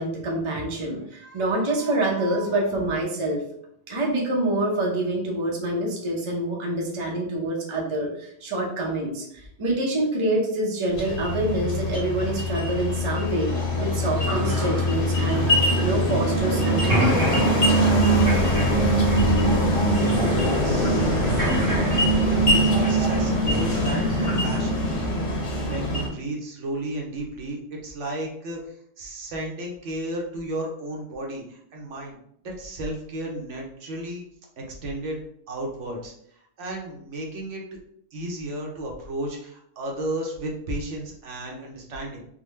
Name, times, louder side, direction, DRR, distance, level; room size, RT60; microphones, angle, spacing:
voice 1, 0.0-3.4 3.9-17.1, right 1 dB, 30° right, -1 dB, 0.6 m, -26 dB
sound 1, 10.9-26.1, equal, 65° left, 1.4 m, -22 dB
sound 2, 13.5-16.5 16.7-24.6, equal, 50° right, 1.0 m, -31 dB
voice 2, 20.2-21.3 22.3-32.2 32.4-34.2 34.6-35.2 35.5-36.1 36.6-37.6 38.1-42.2, right 1 dB, 75° right, 0 dB, 1.1 m, -33 dB
3.6 x 2.2 x 3.2 m, 0.69 s
omnidirectional pair, 1.3 m